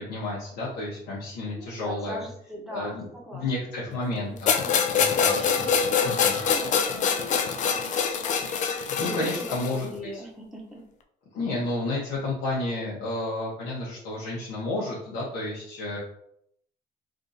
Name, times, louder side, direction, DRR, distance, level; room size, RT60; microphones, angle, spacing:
voice 1, 0.0-2.2 2.7-3.1 3.3-4.5 4.9-5.5 6.0-6.3 8.7-10.2 11.3-16.0, left 2 dB, 80° left, -6 dB, 0.9 m, -31 dB
voice 2, 1.5-4.0 4.3-5.0 5.2-8.0 9.0-10.8, equal, ahead, -3 dB, 0.8 m, -40 dB
sound 1, 4.5-9.8, left 6 dB, 45° left, 0.4 m, -25 dB
3.5 x 2.5 x 2.7 m, 0.72 s
cardioid pair, 110°, 17 cm